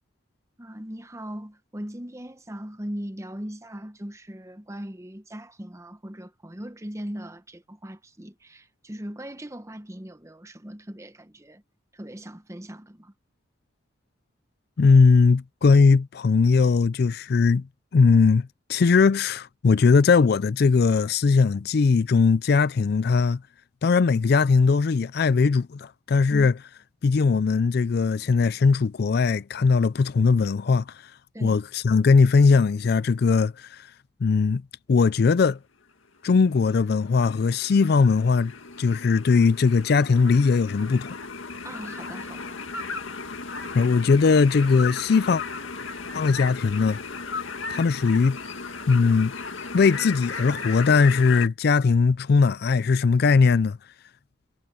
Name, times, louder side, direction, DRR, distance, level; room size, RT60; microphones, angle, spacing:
voice 1, 0.6-11.6 11.9-13.1 26.3-26.5 31.3-31.6 41.6-42.6, equal, 15° right, 0.9 m, -39 dB
voice 2, 14.8-17.6 17.9-23.4 23.8-26.5 27.0-30.8 31.4-33.9 34.2-34.6 34.9-35.6 36.2-38.5 38.8-41.1 43.7-45.4 46.1-47.0 47.7-48.4 48.9-49.3 49.7-53.8, left 4 dB, 55° left, 0.4 m, -20 dB
sound 1, 36.4-51.5, left 4 dB, 85° left, 2.0 m, -36 dB
head